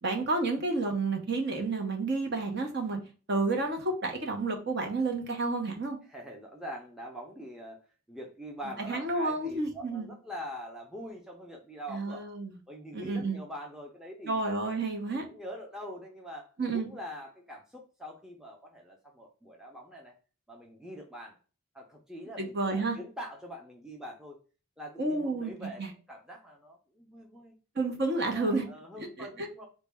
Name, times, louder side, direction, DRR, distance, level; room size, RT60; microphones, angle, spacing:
voice 1, 0.0-3.0 3.3-6.0 8.9-10.1 11.9-12.6 12.9-13.4 14.2-15.2 16.6-16.9 22.4-23.0 25.0-25.5 25.8-25.9 27.7-28.6 29.2-29.5, right 3 dB, 50° right, 3 dB, 0.8 m, -30 dB
voice 2, 6.1-7.8 8.1-12.2 12.7-14.4 14.7-14.8 15.3-16.5 16.7-20.2 20.5-21.4 21.7-24.4 24.8-27.5 28.2-29.7, equal, 5° right, -1 dB, 0.5 m, -44 dB
4.0 x 2.2 x 3.3 m, 0.35 s
head